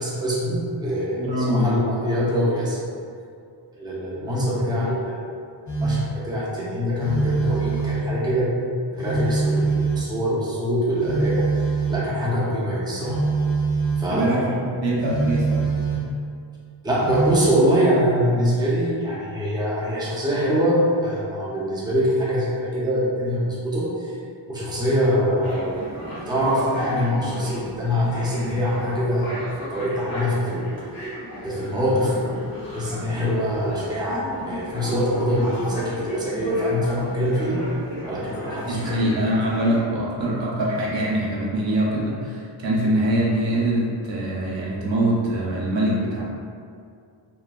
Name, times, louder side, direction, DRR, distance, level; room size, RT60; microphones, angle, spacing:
voice 1, 0.0-2.8 3.7-5.2 5.8-8.5 8.9-13.2 14.0-14.4 16.8-24.2 24.5-26.0 26.3-29.4 29.7-30.7 31.4-32.1 32.7-37.6 38.1-39.1, equal, 10° right, -7 dB, 0.4 m, -24 dB
voice 2, 1.2-1.7 14.1-14.6 14.8-15.7 38.7-46.2, right 1 dB, 65° right, -4 dB, 0.7 m, -23 dB
Telephone, 5.7-6.2 7.0-8.2 9.0-10.2 11.0-12.2 13.0-14.1 15.0-16.2 17.0-17.5, right 4 dB, 35° left, 0.7 m, -24 dB
sound 1, 25.4-39.8, left 1 dB, 90° left, 1.0 m, -35 dB
2.9 x 2.2 x 2.2 m, 2.3 s
wide cardioid pair, 140°, 49 cm